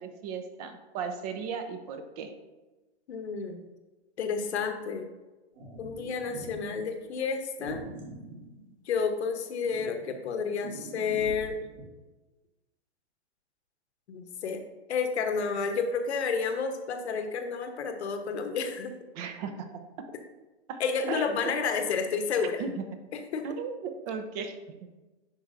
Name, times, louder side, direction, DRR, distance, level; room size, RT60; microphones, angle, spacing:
voice 1, 0.0-2.3 19.1-19.7 20.7-20.8 21.1-21.3 22.6-22.8 23.4-24.9, right 6 dB, 35° right, 7 dB, 0.7 m, -36 dB
voice 2, 3.1-3.7 4.2-5.1 5.8-7.8 8.8-11.6 14.1-14.6 14.9-19.0 20.8-22.6 23.1-23.5, left 5 dB, 75° left, 7 dB, 1.0 m, -30 dB
sound 1, 5.6-6.8 7.6-9.1 9.6-11.8, right 2 dB, 55° right, 2.0 m, -44 dB
10.5 x 4.4 x 2.5 m, 1.2 s
hypercardioid pair, 140°, 34 cm